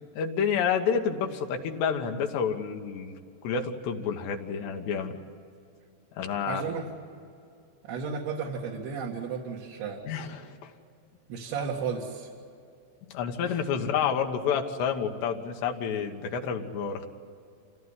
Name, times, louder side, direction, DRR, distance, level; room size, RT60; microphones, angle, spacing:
voice 1, 0.2-3.2 3.4-5.2 6.2-6.7 10.1-10.7 13.1-17.1, left 7 dB, 85° left, 3 dB, 3.6 m, -29 dB
voice 2, 6.5-6.9 7.8-10.0 11.3-12.3, right 5 dB, 75° right, -4 dB, 3.9 m, -33 dB
27.0 x 17.0 x 9.7 m, 2.5 s
omnidirectional pair, 4.8 m